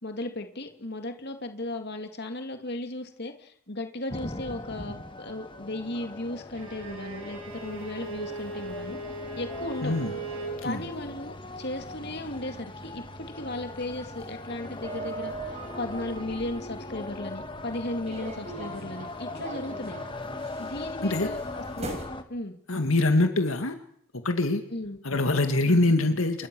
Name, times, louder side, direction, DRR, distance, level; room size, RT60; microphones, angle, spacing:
voice 1, 0.0-9.0 9.3-9.9 10.6-19.9 20.6-21.9 22.3-22.6 24.7-25.0 25.6-25.9, left 1 dB, 50° left, 6 dB, 2.5 m, -36 dB
sound 1, 4.1-22.2, left 2 dB, 25° left, 1.7 m, -40 dB
Bowed string instrument, 6.5-10.6, right 2 dB, 80° right, 7.4 m, -38 dB
sound 2, 7.5-17.4 18.1-22.1, right 2 dB, 30° right, 5.6 m, -43 dB
voice 2, 9.8-10.1 10.6-10.8 21.0-21.3 22.7-23.7 24.2-24.6 25.0-26.5, left 2 dB, 70° left, 7 dB, 2.1 m, -24 dB
29.5 x 22.5 x 6.3 m, 0.65 s
head